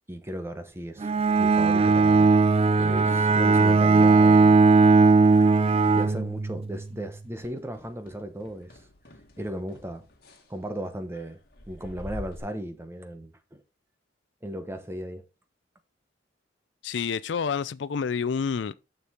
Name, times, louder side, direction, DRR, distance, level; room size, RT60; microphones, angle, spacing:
voice 1, 0.1-1.1 1.4-2.3 2.8-4.6 5.9-8.8 9.4-10.1 10.5-11.4 11.7-13.6 14.4-15.2, right 1 dB, 15° right, 0.9 m, -36 dB
Bowed string instrument, 1.0-6.8, right 4 dB, 30° right, 0.3 m, -18 dB
sound 1, 4.7-5.8 6.0-6.4 6.7-6.9 7.3-12.4, left 2 dB, 55° left, 1.8 m, -47 dB
voice 2, 16.8-18.7, left 6 dB, 75° left, 0.4 m, -28 dB
6.9 x 6.8 x 3.7 m
head